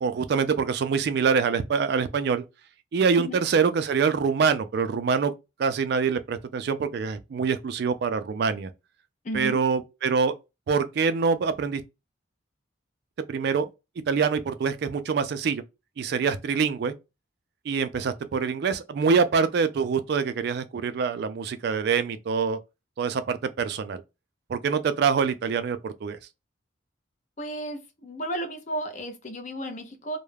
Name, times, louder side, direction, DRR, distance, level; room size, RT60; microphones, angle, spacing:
voice 1, 0.0-2.4 2.9-5.3 5.6-8.7 9.3-10.3 10.7-11.8 13.3-13.7 14.1-15.6 16.0-16.9 17.7-22.6 23.0-24.0 24.5-26.2, right 5 dB, 55° right, 0.3 m, -25 dB
voice 2, 9.2-9.6 27.4-30.2, right 1 dB, 40° left, 0.5 m, -33 dB
2.3 x 2.0 x 3.1 m
head